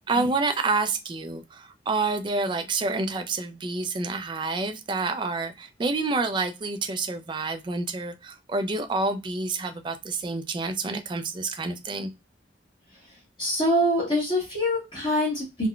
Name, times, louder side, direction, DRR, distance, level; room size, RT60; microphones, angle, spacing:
voice 1, 0.1-12.1, right 3 dB, 25° right, 8 dB, 0.3 m, -28 dB
voice 2, 13.4-15.7, equal, 25° left, -5 dB, 1.0 m, -24 dB
3.6 x 2.1 x 2.3 m, 0.23 s
head